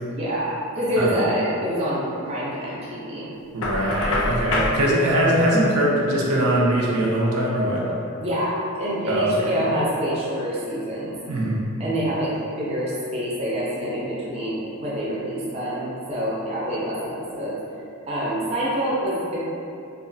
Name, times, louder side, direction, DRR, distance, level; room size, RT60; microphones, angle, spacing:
voice 1, 0.1-3.3 8.2-11.1 11.8-17.5 18.1-19.4, equal, 30° right, -8 dB, 0.4 m, -26 dB
voice 2, 3.5-7.9 9.1-9.6 11.3-11.6, right 1 dB, 90° right, -4 dB, 0.5 m, -21 dB
Knock, 3.6-4.8, left 2 dB, 75° left, 0.4 m, -24 dB
2.4 x 2.2 x 2.5 m, 2.7 s
head